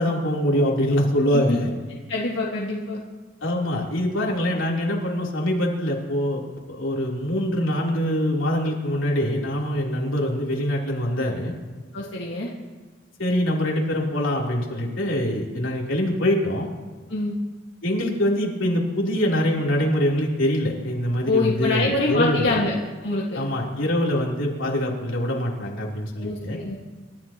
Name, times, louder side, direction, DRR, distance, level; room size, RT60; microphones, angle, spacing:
voice 1, 0.0-1.7 3.4-6.4 6.7-11.5 13.2-16.7 17.8-22.5 23.3-26.6, equal, 90° left, -3 dB, 3.4 m, -24 dB
voice 2, 2.1-3.0 11.9-12.5 17.1-17.3 21.3-22.7 23.0-23.4 26.2-26.8, left 2 dB, 70° left, -4 dB, 1.7 m, -25 dB
29.0 x 14.0 x 3.0 m, 1.4 s
head